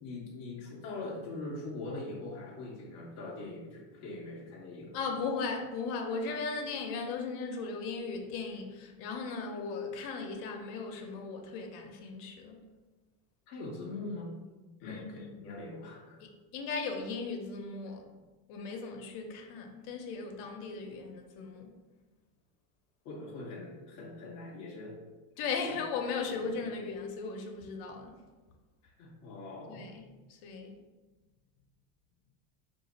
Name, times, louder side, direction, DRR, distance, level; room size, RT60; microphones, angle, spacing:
voice 1, 0.0-5.0 13.5-14.4 14.8-16.2 23.0-25.0 25.7-25.8 26.5-26.7 28.8-29.9, left 2 dB, 35° left, -4 dB, 0.4 m, -42 dB
voice 2, 4.9-12.6 14.8-15.4 16.2-18.1 18.5-21.8 25.4-28.2 29.7-30.8, left 4 dB, 80° left, 3 dB, 0.7 m, -37 dB
2.5 x 2.4 x 4.0 m, 1.2 s
cardioid pair, 160°, 46 cm